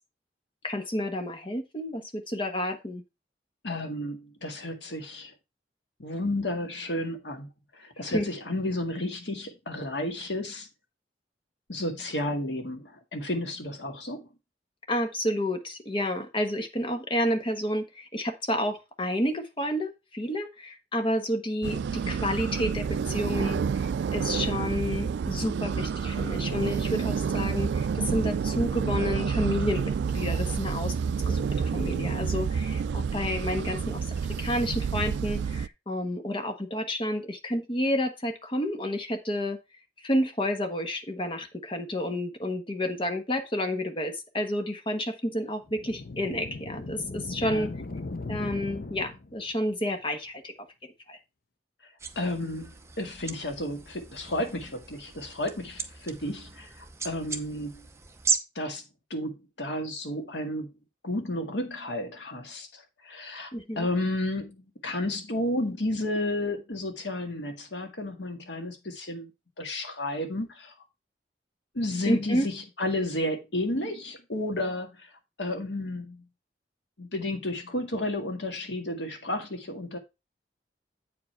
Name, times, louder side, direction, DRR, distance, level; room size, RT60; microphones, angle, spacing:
voice 1, 0.6-3.0 8.1-8.3 14.9-31.0 31.3-31.4 31.7-34.1 34.4-39.6 40.0-47.7 48.3-50.5 51.1-51.2 63.5-63.9 72.1-72.5, left 1 dB, 30° left, 1.1 m, -30 dB
voice 2, 3.6-5.3 6.0-7.5 7.7-10.7 11.7-14.3 47.4-47.7 52.2-57.8 58.6-58.8 59.1-60.7 61.0-69.3 69.6-70.7 71.7-75.1 75.4-76.2 77.0-80.0, left 1 dB, 80° left, 1.8 m, -32 dB
sound 1, 21.6-35.7, right 6 dB, 75° right, 0.3 m, -29 dB
sound 2, 45.7-49.5, left 2 dB, 55° left, 0.7 m, -38 dB
sound 3, 52.0-58.4, right 5 dB, 15° right, 0.7 m, -36 dB
8.4 x 4.9 x 4.5 m
head